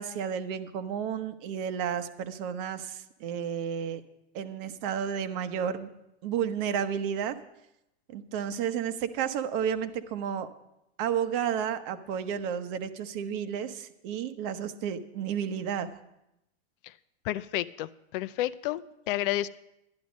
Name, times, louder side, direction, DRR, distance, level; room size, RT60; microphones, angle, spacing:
voice 1, 0.0-4.0 4.3-5.9 6.2-7.4 8.1-10.5 11.0-15.9, right 8 dB, 55° right, 10 dB, 1.0 m, -32 dB
voice 2, 17.2-19.5, left 14 dB, 55° left, 15 dB, 0.5 m, -31 dB
11.5 x 10.5 x 5.2 m, 0.85 s
hypercardioid pair, 125°, 33 cm